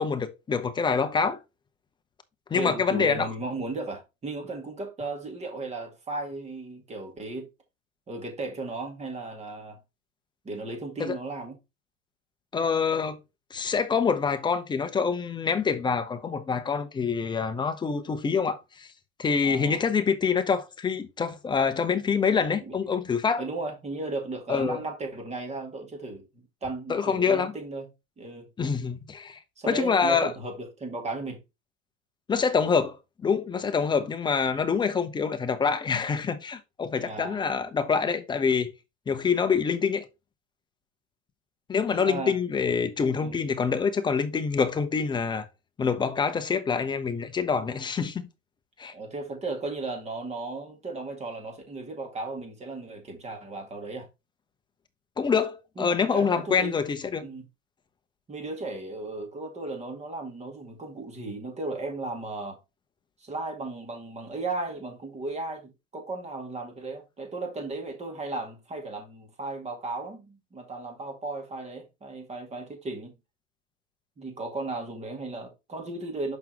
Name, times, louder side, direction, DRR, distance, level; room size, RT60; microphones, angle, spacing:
voice 1, 0.0-1.4 2.5-3.3 11.0-11.2 12.5-13.2 13.5-18.9 19.2-23.4 24.5-24.8 26.9-27.5 28.6-29.4 29.7-30.3 32.3-33.0 33.2-38.7 39.1-40.0 41.7-45.5 45.8-48.3 48.8-48.9 55.2-57.2, left 5 dB, 10° left, 0.7 m, -26 dB
voice 2, 2.5-7.5 8.1-9.8 10.4-11.6 19.4-19.8 22.6-22.8 23.4-26.3 26.6-27.9 28.2-28.5 29.6-31.4 37.0-37.6 41.9-42.3 43.2-43.4 48.9-54.1 55.8-56.7 57.2-57.5 58.3-62.6 63.2-73.1 74.2-76.4, right 2 dB, 15° right, 2.2 m, -35 dB
6.2 x 5.6 x 2.9 m
supercardioid pair, 135°, 38 cm